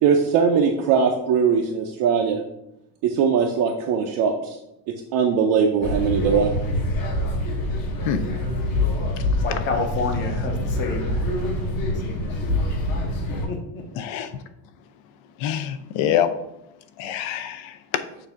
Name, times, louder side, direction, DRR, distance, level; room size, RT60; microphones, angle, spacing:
voice 1, 0.0-2.4 3.0-4.6 4.9-6.5, right 6 dB, 45° right, 1 dB, 0.5 m, -20 dB
sound 1, 5.8-13.5, left 1 dB, 45° left, 1.0 m, -25 dB
voice 2, 9.4-11.3 11.9-12.6 13.5-13.9, left 3 dB, 25° left, 3 dB, 0.6 m, -30 dB
voice 3, 13.9-14.4 15.4-16.3 17.0-18.0, left 10 dB, 75° left, 10 dB, 0.7 m, -25 dB
6.8 x 2.6 x 5.6 m, 0.85 s
cardioid pair, 175°, 48 cm